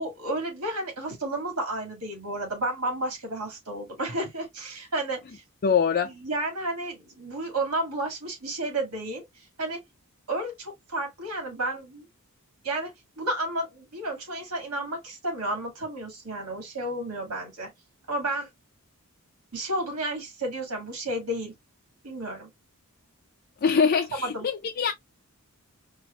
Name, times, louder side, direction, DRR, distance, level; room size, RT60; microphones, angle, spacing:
voice 1, 0.0-5.4 6.0-9.8 10.3-12.1 12.6-17.7 18.1-18.5 19.5-21.5 22.0-22.5 24.2-24.5, right 1 dB, 85° right, 2.1 m, -32 dB
voice 2, 5.6-6.1 23.6-24.9, left 6 dB, 45° left, 0.4 m, -23 dB
4.6 x 2.6 x 2.3 m
head